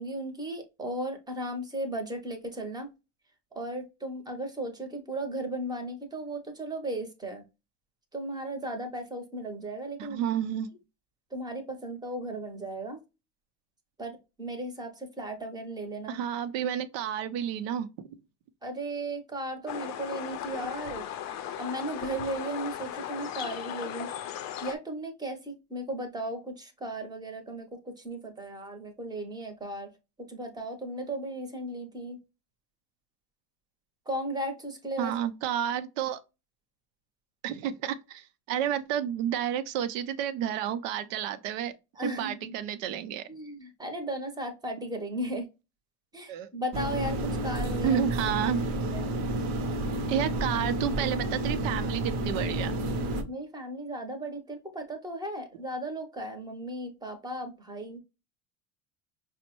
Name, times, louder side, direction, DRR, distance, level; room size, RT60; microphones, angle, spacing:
voice 1, 0.0-2.9 3.5-7.4 8.1-10.3 11.3-13.0 14.0-16.2 18.6-21.1 21.6-24.1 24.6-29.9 30.2-32.2 34.1-35.1 41.9-42.6 43.3-45.5 46.1-48.0 48.9-49.1 53.3-58.0, right 1 dB, 10° right, 0.7 m, -36 dB
voice 2, 10.0-10.7 16.1-18.2 35.0-36.2 37.4-41.7 42.0-43.2 46.3-46.5 47.8-48.6 50.1-52.8, right 9 dB, 90° right, 0.6 m, -31 dB
sound 1, 19.7-24.8, left 10 dB, 50° left, 0.5 m, -37 dB
sound 2, 46.7-53.2, right 1 dB, 50° right, 0.7 m, -30 dB
5.2 x 2.1 x 2.9 m
cardioid pair, 135°, 37 cm